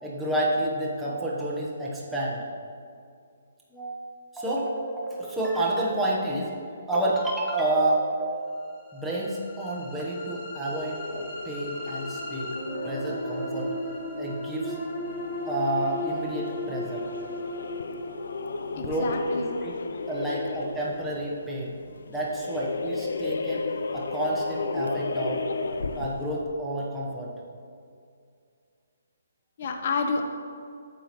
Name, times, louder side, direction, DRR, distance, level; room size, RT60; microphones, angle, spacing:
voice 1, 0.0-2.4 3.7-6.6 6.9-8.4 8.9-12.5 12.8-13.7 14.2-14.8 15.5-17.0 18.8-19.7 20.1-21.7 22.1-23.6 23.9-25.4 25.9-27.3, right 1 dB, 5° right, -6 dB, 1.0 m, -29 dB
sound 1, 8.7-20.8, left 1 dB, 25° left, 1.6 m, -37 dB
sound 2, 10.7-26.4, left 3 dB, 75° left, 0.5 m, -35 dB
voice 2, 18.7-19.5 29.6-30.2, left 4 dB, 45° left, 4 dB, 0.7 m, -29 dB
9.4 x 6.8 x 3.0 m, 2.3 s
hypercardioid pair, 165°, 0 cm